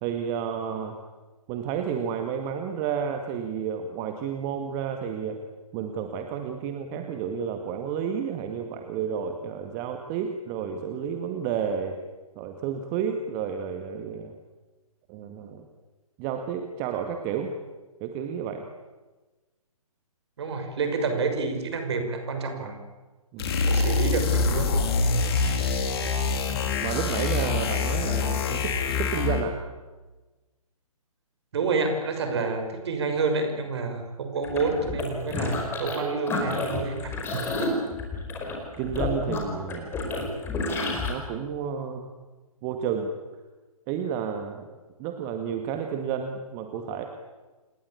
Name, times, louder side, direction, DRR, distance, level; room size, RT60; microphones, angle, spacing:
voice 1, 0.0-1.0 1.5-5.4 5.7-12.0 12.4-14.3 15.1-15.6 16.2-17.5 18.0-18.7 23.3-23.7 26.8-29.6 38.8-39.9 41.1-42.1 42.6-43.1 43.9-47.1, right 7 dB, 20° right, 5 dB, 1.9 m, -31 dB
voice 2, 20.4-22.8 23.7-24.8 25.3-25.8 31.5-37.8, right 4 dB, 45° right, 6 dB, 6.0 m, -29 dB
sound 1, 23.4-29.5, left 4 dB, 40° left, 4.1 m, -25 dB
sound 2, 34.4-36.0 36.3-41.1, left 3 dB, 10° left, 4.8 m, -30 dB
28.5 x 20.5 x 8.6 m, 1.2 s
figure-of-eight pair, 135°, 19 cm